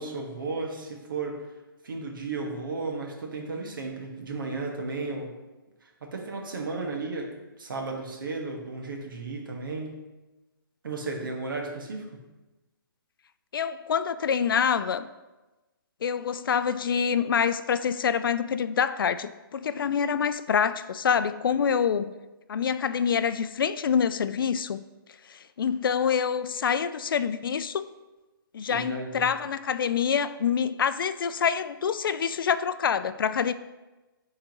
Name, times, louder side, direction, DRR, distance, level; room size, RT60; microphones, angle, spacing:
voice 1, 0.0-1.5 1.8-5.3 5.8-10.0 10.8-12.2 28.7-29.2, right 3 dB, 65° right, 1.4 m, -34 dB
voice 2, 13.5-15.1 16.0-22.1 22.5-24.8 25.3-27.8 28.5-33.5, left 7 dB, 70° left, 0.4 m, -26 dB
10.5 x 3.7 x 3.0 m
hypercardioid pair, 160°, 12 cm